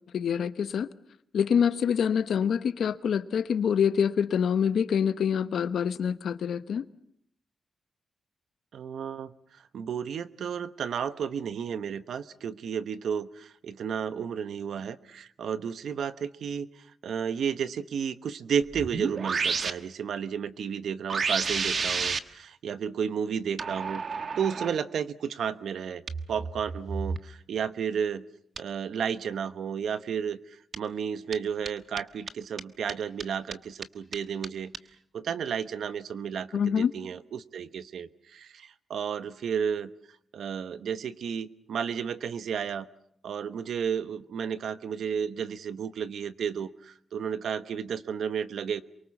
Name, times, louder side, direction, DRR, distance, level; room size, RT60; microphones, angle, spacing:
voice 1, 0.1-0.9 1.3-6.9 36.5-36.9, left 7 dB, 75° left, 13 dB, 1.0 m, -26 dB
voice 2, 8.7-24.0 24.4-26.0 26.3-28.2 28.6-34.7 35.1-39.9 40.3-42.9 43.2-48.8, right 7 dB, 80° right, 14 dB, 1.0 m, -32 dB
sound 1, 18.6-19.7 21.1-22.2 23.6-24.7 26.1-27.2 28.6-28.7 30.7-30.8 31.3-31.4 31.7-31.8 32.0-32.1 32.3-32.4 32.6-32.7 32.9-33.0 33.2-33.3 33.5-33.6 33.8-33.9 34.1-34.2 34.4-34.5 34.7-34.8, right 5 dB, 55° right, 1.3 m, -30 dB
28.0 x 23.5 x 7.2 m, 0.68 s
cardioid pair, 90°, 0 cm